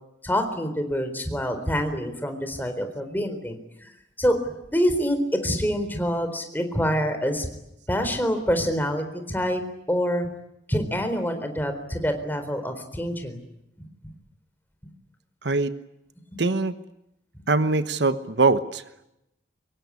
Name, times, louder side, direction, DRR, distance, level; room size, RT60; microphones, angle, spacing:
voice 1, 0.2-3.9 4.2-4.4 4.7-7.5 7.9-9.6 9.9-10.3 10.7-13.4 13.8-13.9, equal, 10° left, 7 dB, 4.0 m, -26 dB
voice 2, 15.4-15.7 16.4-16.8 17.5-19.0, right 3 dB, 70° right, 12 dB, 1.2 m, -23 dB
25.0 x 23.0 x 9.9 m, 0.86 s
head